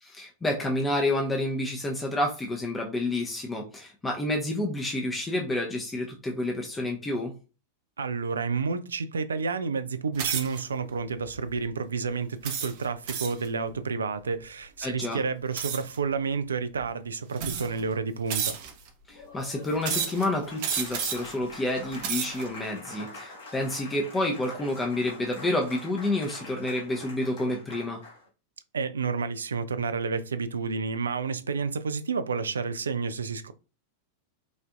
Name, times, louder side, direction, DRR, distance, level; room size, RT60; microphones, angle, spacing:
voice 1, 0.0-7.3 14.8-15.2 19.1-28.0, left 1 dB, 15° left, 0.6 m, -29 dB
voice 2, 8.0-18.6 28.7-33.5, right 5 dB, 70° right, 0.3 m, -30 dB
sound 1, 10.2-10.6 11.3-11.5 12.4-13.5 15.6-16.0 16.8-16.9 17.4-17.8 18.3-18.9 19.8-20.3 20.6-21.3 21.8-22.4, right 7 dB, 50° right, 0.8 m, -31 dB
Applause, 19.1-28.3, left 2 dB, 60° left, 1.6 m, -45 dB
5.0 x 2.5 x 2.4 m
figure-of-eight pair, 90°, 0 cm